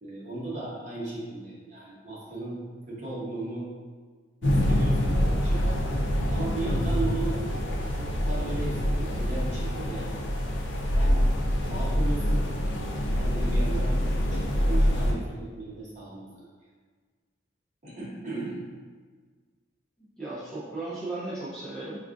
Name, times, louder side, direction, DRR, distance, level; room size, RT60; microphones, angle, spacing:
voice 1, 0.0-2.6 2.9-3.7 4.4-5.6 6.3-7.4 8.0-10.2 11.0-11.2 11.7-12.4 13.2-14.0 14.3-16.5 17.8-18.6, right 2 dB, 40° right, -6 dB, 0.8 m, -36 dB
sound 1, 4.4-15.1, equal, 80° left, 0.5 m, -25 dB
voice 2, 20.2-22.0, right 2 dB, 5° left, -10 dB, 0.5 m, -35 dB
4.5 x 2.4 x 2.4 m, 1.5 s
head